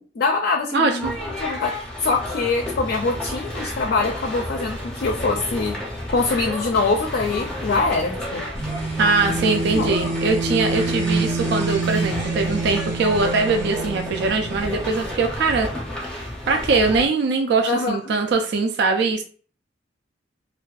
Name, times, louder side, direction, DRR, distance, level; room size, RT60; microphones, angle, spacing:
voice 1, 0.2-1.1 1.4-1.7 2.0-5.8 6.1-8.5 9.2-9.3 9.7-9.9 17.7-18.0, left 3 dB, 60° left, 2 dB, 0.4 m, -23 dB
voice 2, 0.7-1.1 9.0-15.7 16.5-19.2, right 4 dB, 65° right, 4 dB, 0.3 m, -21 dB
sound 1, 1.0-17.1, left 1 dB, 5° left, 0.6 m, -31 dB
sound 2, 8.5-15.2, right 3 dB, 85° right, 0.9 m, -27 dB
2.5 x 2.2 x 2.3 m, 0.42 s
head